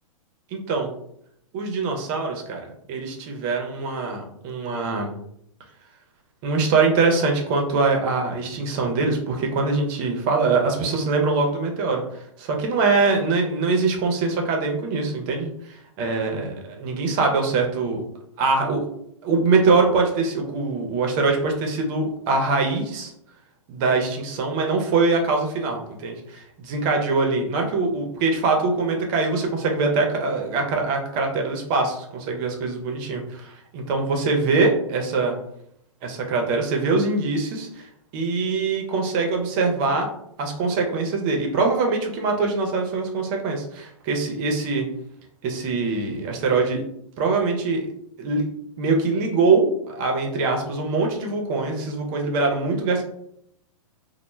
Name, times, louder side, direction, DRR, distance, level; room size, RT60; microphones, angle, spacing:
voice 1, 0.5-0.9 1.5-2.6 2.9-5.1 6.4-12.0 12.4-18.0 18.4-18.8 19.2-23.1 23.7-35.4 36.0-37.9 38.1-40.1 40.4-44.9 45.4-46.8 47.2-47.9 48.2-48.5 48.8-53.0, right 3 dB, 35° right, 2 dB, 0.5 m, -23 dB
2.1 x 2.0 x 3.1 m, 0.73 s
hypercardioid pair, 120°, 18 cm